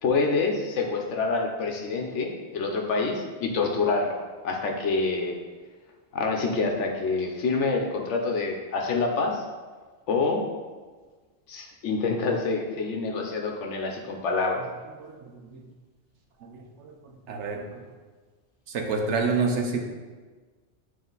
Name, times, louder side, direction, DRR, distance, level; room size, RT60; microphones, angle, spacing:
voice 1, 0.0-4.2 4.4-5.3 6.1-9.4 10.1-10.4 11.5-14.6, left 4 dB, 85° left, 2 dB, 1.2 m, -26 dB
voice 2, 15.0-15.7 16.4-17.0 17.3-17.8 18.7-19.8, right 4 dB, 80° right, 3 dB, 1.1 m, -29 dB
9.0 x 3.4 x 3.9 m, 1.4 s
omnidirectional pair, 1.2 m